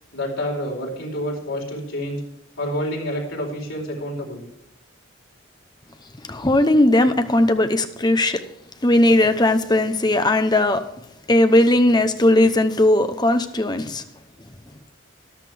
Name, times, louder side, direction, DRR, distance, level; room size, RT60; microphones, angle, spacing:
voice 1, 0.1-2.2 2.6-4.4, equal, 85° left, 4.4 m, -28 dB
voice 2, 6.3-8.4 8.8-10.8 11.3-14.0, left 1 dB, 20° left, 0.8 m, -18 dB
14.0 x 11.5 x 3.4 m
head